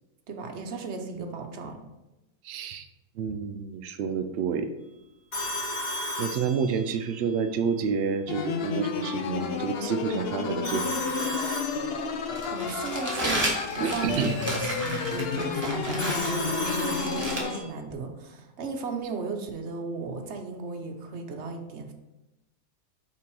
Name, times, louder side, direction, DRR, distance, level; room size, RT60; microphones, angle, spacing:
voice 1, 0.3-1.8 12.5-21.9, right 4 dB, 50° right, 4 dB, 0.9 m, -35 dB
voice 2, 2.4-2.9 3.2-4.7 6.2-11.1 13.8-14.4 16.7-16.8, right 6 dB, 85° right, 8 dB, 0.5 m, -29 dB
Telephone, 5.3-7.1 10.6-12.3 16.0-17.7, left 1 dB, 40° left, 2.8 m, -34 dB
sound 1, 8.3-17.6, left 5 dB, 60° left, 0.6 m, -31 dB
Crumpling crinkling, 12.3-17.4, right 1 dB, 25° right, 1.3 m, -33 dB
5.8 x 4.4 x 4.7 m, 0.98 s
omnidirectional pair, 1.7 m